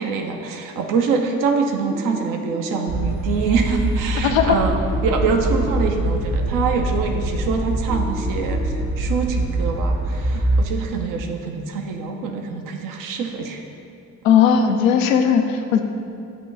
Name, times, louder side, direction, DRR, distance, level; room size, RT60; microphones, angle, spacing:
voice 1, 0.0-13.6, right 5 dB, 55° right, 3 dB, 0.7 m, -25 dB
sound 1, 1.9-2.9 4.9-5.9 7.9-8.9, left 4 dB, 10° left, 0.4 m, -34 dB
sound 2, 2.9-10.6, right 1 dB, 75° right, 1.5 m, -23 dB
voice 2, 4.2-4.6 14.2-15.8, left 7 dB, 80° left, 5 dB, 0.5 m, -17 dB
8.6 x 3.0 x 6.4 m, 2.5 s
figure-of-eight pair, 40°, 39 cm